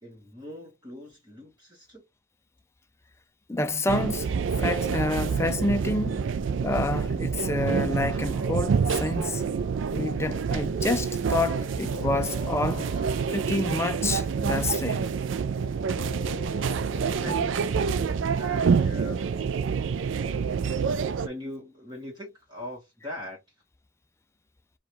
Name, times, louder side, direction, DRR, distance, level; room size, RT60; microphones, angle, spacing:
voice 1, 0.0-2.0 17.1-19.3 21.2-23.4, left 1 dB, 20° right, 1.4 m, -41 dB
voice 2, 3.5-4.3 4.6-6.2 6.6-9.4 9.9-12.9 13.3-15.0 16.7-16.8 17.3-17.4, left 2 dB, 15° left, 0.4 m, -28 dB
sound 1, 3.9-21.3, right 6 dB, 65° right, 0.4 m, -27 dB
sound 2, 4.1-6.5 8.2-10.1 11.5-14.2 15.5-20.0, left 1 dB, 45° right, 1.5 m, -44 dB
4.7 x 2.3 x 3.1 m
head